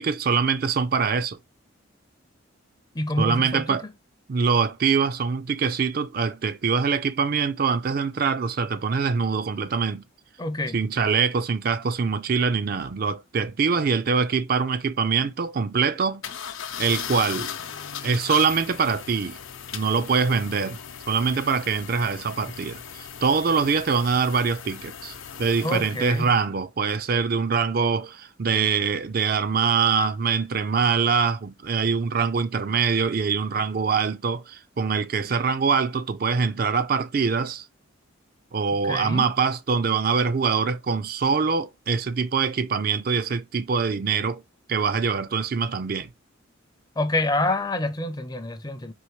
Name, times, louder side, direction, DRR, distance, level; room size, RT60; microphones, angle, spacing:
voice 1, 0.0-1.4 3.2-3.9 4.3-10.0 10.7-16.2 16.8-17.5 18.0-19.4 19.7-20.8 21.1-37.7 38.5-44.4 44.7-46.1, right 5 dB, 45° right, 0.4 m, -24 dB
voice 2, 2.9-3.9 10.4-10.8 25.6-26.3 38.8-39.2 47.0-48.9, left 2 dB, 20° left, 0.5 m, -27 dB
sound 1, 16.2-26.4, left 8 dB, 75° left, 0.7 m, -38 dB
4.6 x 3.0 x 3.0 m
head